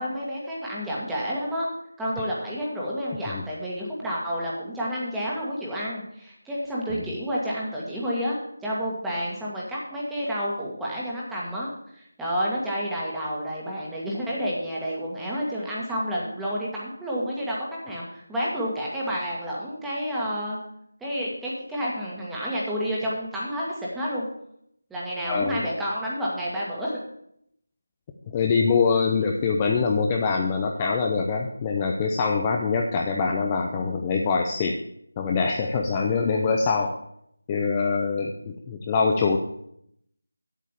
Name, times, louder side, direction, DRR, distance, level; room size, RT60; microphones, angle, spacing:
voice 1, 0.0-1.7 2.0-8.4 8.6-11.7 12.2-17.6 17.8-20.6 21.0-24.3 24.9-27.0, equal, 5° right, -6 dB, 1.7 m, -30 dB
voice 2, 25.2-25.6 28.3-34.7 35.2-36.9 37.5-39.4, left 5 dB, 20° left, 1 dB, 0.6 m, -24 dB
8.1 x 7.3 x 7.1 m, 0.74 s
figure-of-eight pair, 170°, 0 cm